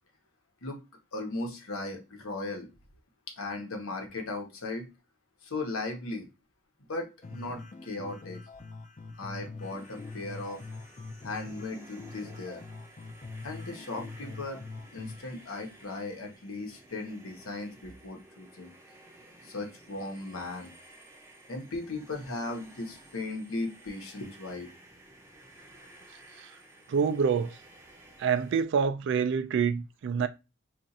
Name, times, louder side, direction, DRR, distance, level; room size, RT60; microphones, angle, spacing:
voice 1, 1.1-2.7 3.4-4.9 5.4-6.3 6.9-8.4 9.2-10.6 11.2-12.6 13.4-14.6 14.9-18.7 19.4-20.7 21.5-24.7, left 2 dB, 85° left, 1.0 m, -37 dB
sound 1, 7.2-15.2, left 3 dB, 35° left, 0.4 m, -44 dB
sound 2, 9.6-28.6, right 1 dB, 15° right, 0.6 m, -55 dB
voice 2, 26.9-27.6 28.2-30.3, right 6 dB, 60° right, 0.3 m, -27 dB
2.5 x 2.4 x 4.0 m
head